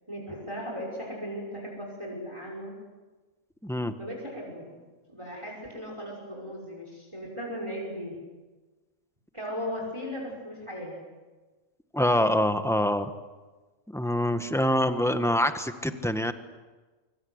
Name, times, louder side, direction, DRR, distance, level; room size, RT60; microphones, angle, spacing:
voice 1, 0.1-2.7 4.0-4.8 5.1-8.2 9.3-11.0 12.1-12.4, equal, 20° right, -1 dB, 5.9 m, -37 dB
voice 2, 3.6-3.9 11.9-13.1 13.9-16.3, left 1 dB, ahead, 8 dB, 1.3 m, -25 dB
25.5 x 25.0 x 8.1 m, 1.3 s
omnidirectional pair, 1.4 m